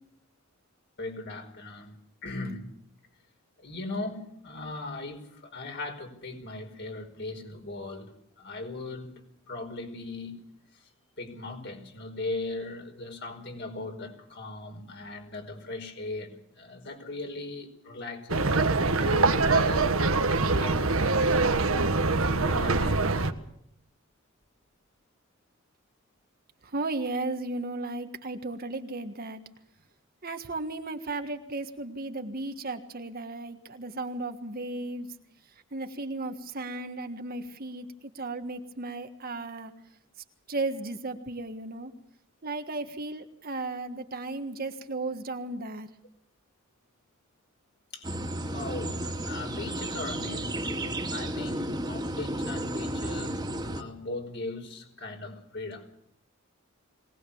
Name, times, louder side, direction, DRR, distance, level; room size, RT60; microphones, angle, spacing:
voice 1, 1.0-1.9 2.2-2.6 3.6-8.1 8.4-9.1 9.5-10.3 11.2-21.4 22.2-23.0 47.9-48.1 48.4-55.9, left 2 dB, 55° left, 4 dB, 5.0 m, -39 dB
sound 1, 18.3-23.3, right 3 dB, 75° right, 1.5 m, -24 dB
voice 2, 26.7-29.4 30.2-35.1 35.7-37.9 38.1-39.7 40.5-41.9 42.4-45.9, right 2 dB, 45° right, 7 dB, 1.6 m, -35 dB
sound 2, 48.0-53.8, right 1 dB, 20° right, 2.2 m, -33 dB
23.0 x 19.0 x 7.1 m, 0.72 s
head